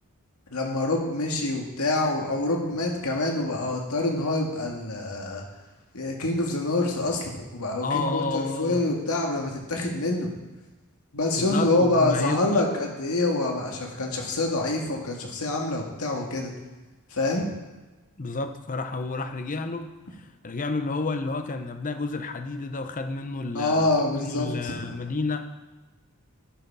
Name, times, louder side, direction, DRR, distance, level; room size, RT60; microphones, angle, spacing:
voice 1, 0.5-5.4 5.9-10.3 11.1-16.5 17.1-17.5 23.5-24.8, left 2 dB, 80° left, 0 dB, 1.9 m, -26 dB
voice 2, 7.8-9.0 11.4-12.5 18.2-23.9 24.1-25.5, left 3 dB, 35° left, 8 dB, 0.7 m, -30 dB
11.0 x 5.8 x 5.5 m, 1.2 s
head